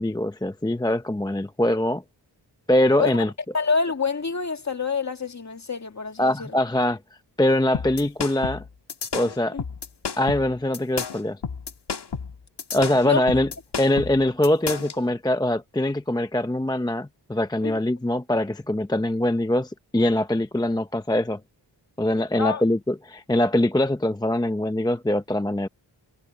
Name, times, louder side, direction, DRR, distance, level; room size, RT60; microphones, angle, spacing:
voice 1, 0.0-2.0 2.7-3.3 6.2-7.0 7.4-8.6 9.1-9.6 10.2-11.4 12.7-13.5 13.8-21.4 22.0-25.7, left 1 dB, 10° left, 0.7 m, -23 dB
voice 2, 3.5-6.6 9.5-9.6 13.0-13.2 17.6-17.8 22.3-22.6, left 5 dB, 40° left, 2.0 m, -26 dB
sound 1, 7.7-15.0, left 6 dB, 65° left, 1.9 m, -31 dB
wide cardioid pair, 100°, 44 cm